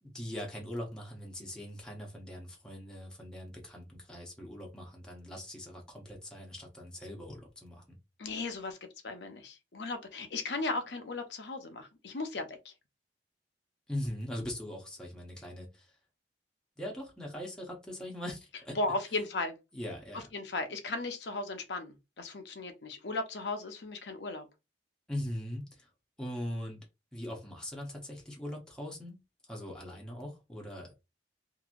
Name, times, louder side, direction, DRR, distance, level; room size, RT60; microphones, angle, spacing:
voice 1, 0.0-8.0 13.9-16.0 16.8-18.8 19.0-19.3 19.7-20.3 25.1-25.9 26.2-26.9 27.1-30.9, left 1 dB, 5° left, 0.7 m, -41 dB
voice 2, 8.2-8.8 9.0-12.7 18.8-19.6 20.3-24.5, left 2 dB, 75° left, 0.7 m, -36 dB
2.9 x 2.6 x 2.4 m
head